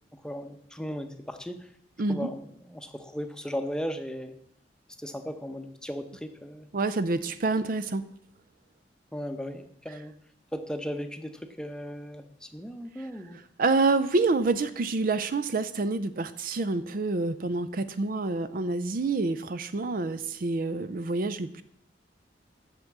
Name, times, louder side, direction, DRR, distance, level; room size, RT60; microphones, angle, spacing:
voice 1, 0.1-1.7 2.1-4.3 5.0-6.7 9.1-10.1 10.5-13.4, equal, 5° left, 7 dB, 0.8 m, -36 dB
voice 2, 6.7-8.0 13.6-21.6, right 3 dB, 50° right, 13 dB, 0.5 m, -27 dB
8.1 x 6.6 x 7.3 m, 0.70 s
head